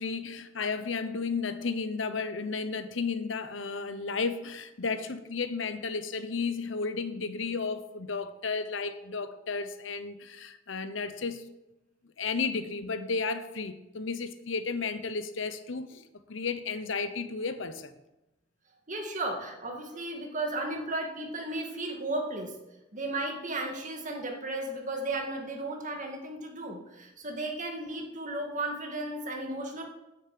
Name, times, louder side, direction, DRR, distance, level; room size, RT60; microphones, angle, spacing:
voice 1, 0.0-11.4 12.2-16.0 16.3-17.9, left 4 dB, 75° left, 0.9 m, -33 dB
voice 2, 18.9-22.5 22.9-29.8, right 2 dB, 40° right, 2.2 m, -34 dB
9.5 x 6.9 x 7.8 m
head